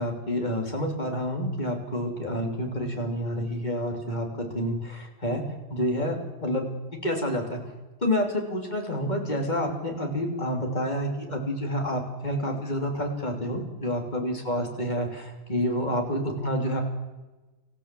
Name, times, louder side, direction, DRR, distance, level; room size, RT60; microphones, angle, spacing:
voice 1, 0.0-4.3 4.5-5.4 5.7-6.2 6.4-6.6 7.0-7.6 8.0-16.8, equal, 35° left, 2 dB, 3.3 m, -28 dB
25.0 x 15.0 x 7.6 m, 1.1 s
omnidirectional pair, 1.3 m